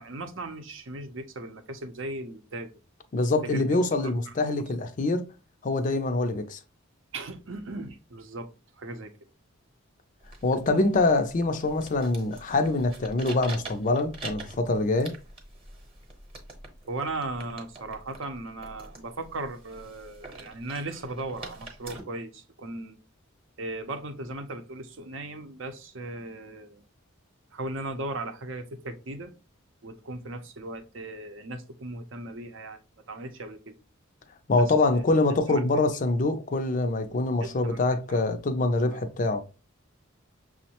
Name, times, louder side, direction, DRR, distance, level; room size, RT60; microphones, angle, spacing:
voice 1, 0.0-2.7 3.4-3.6 3.9-4.3 7.1-8.5 8.8-9.1 16.9-23.0 23.6-26.8 27.5-29.3 29.8-32.8 33.1-33.7 34.9-35.0 35.5-35.6 37.4-37.8 38.1-38.2 38.9-39.0, right 2 dB, 65° right, 0.6 m, -37 dB
voice 2, 3.1-5.3 5.6-6.6 10.4-15.1 34.5-39.4, left 2 dB, 40° left, 0.4 m, -25 dB
sound 1, 10.2-22.0, right 3 dB, 30° right, 0.9 m, -45 dB
6.2 x 2.1 x 2.8 m
head